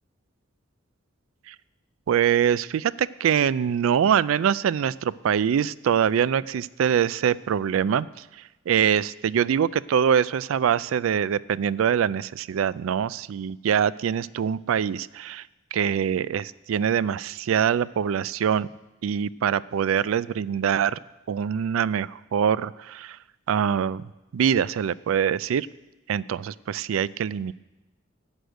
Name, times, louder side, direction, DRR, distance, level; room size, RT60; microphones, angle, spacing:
voice 1, 2.1-18.7 19.0-21.0 21.3-23.2 23.5-24.0 24.3-25.7 26.1-27.5, right 8 dB, 80° right, 19 dB, 0.3 m, -24 dB
11.5 x 6.5 x 7.9 m, 1.0 s
head